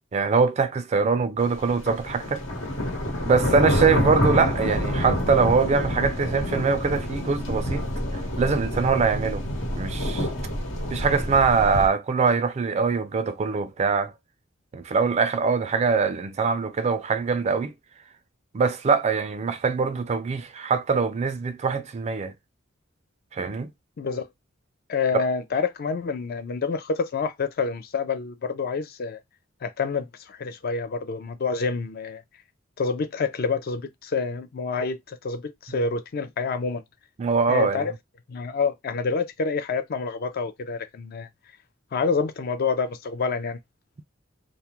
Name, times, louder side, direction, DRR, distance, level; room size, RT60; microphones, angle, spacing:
voice 1, 0.1-2.4 3.2-7.8 8.4-9.5 9.8-10.3 10.9-14.1 14.7-17.7 18.5-22.3 23.3-23.7 25.1-25.2 37.2-37.9, right 5 dB, 35° right, 0.3 m, -23 dB
sound 1, 1.6-11.9, left 1 dB, 85° left, 1.1 m, -27 dB
voice 2, 24.0-24.3 24.9-29.2 29.6-32.2 32.8-36.8 37.5-37.9 38.3-41.3 41.9-43.6, left 4 dB, 50° left, 0.4 m, -27 dB
2.3 x 2.1 x 2.9 m
head